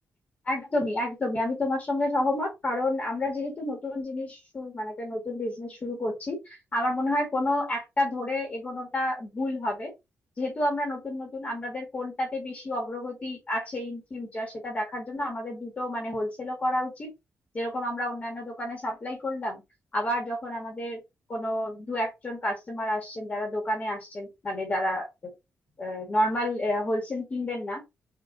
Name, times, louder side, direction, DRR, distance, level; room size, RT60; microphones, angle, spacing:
voice 1, 0.5-9.9 10.4-17.1 17.5-19.6 19.9-21.0 21.3-25.3 25.8-27.8, left 1 dB, 30° left, 2 dB, 1.9 m, -30 dB
6.2 x 3.0 x 2.7 m, 0.22 s
wide cardioid pair, 145°, 5 cm